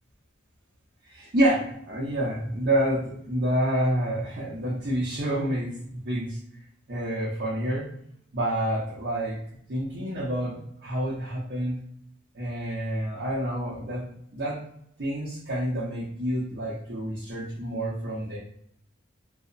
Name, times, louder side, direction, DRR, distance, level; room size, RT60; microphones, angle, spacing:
voice 1, 1.0-6.4 6.9-7.8 8.3-9.4 9.7-11.8 12.3-14.6 15.0-18.4, right 1 dB, 50° right, -6 dB, 0.6 m, -28 dB
2.8 x 2.0 x 2.4 m, 0.72 s
head